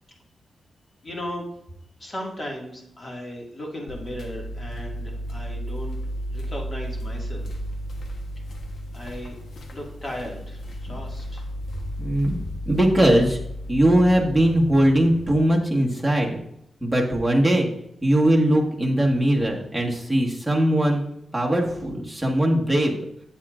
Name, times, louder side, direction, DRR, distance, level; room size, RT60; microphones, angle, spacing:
voice 1, 1.0-1.5 2.0-6.0 6.3-7.5 8.9-9.4 9.7-11.5, left 1 dB, 35° left, -1 dB, 2.1 m, -36 dB
sound 1, 3.9-15.5, equal, 70° left, 1.0 m, -34 dB
voice 2, 12.0-12.4 12.6-13.4 13.7-16.4 16.8-17.7 18.0-21.0 21.3-23.0, right 1 dB, ahead, -3 dB, 1.6 m, -20 dB
8.6 x 7.3 x 2.5 m, 0.76 s
cardioid pair, 80°, 0 cm